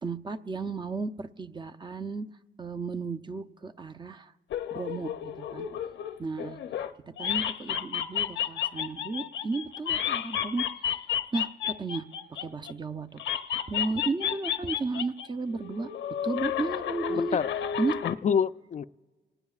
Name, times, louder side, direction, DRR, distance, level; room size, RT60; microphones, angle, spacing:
voice 1, 0.0-2.2 2.6-4.3 4.7-5.7 6.2-6.6 7.2-10.6 11.3-12.0 12.4-13.2 13.7-15.9 16.2-17.4 17.8-17.9, right 3 dB, 25° right, 8 dB, 0.7 m, -33 dB
sound 1, 4.5-6.9 7.2-12.7 13.2-15.3 15.6-18.2, left 10 dB, 70° left, 0.8 m, -32 dB
voice 2, 17.1-17.5 18.0-18.8, left 7 dB, 40° left, 14 dB, 0.4 m, -27 dB
27.5 x 19.0 x 2.4 m, 1.4 s
cardioid pair, 90°, 20 cm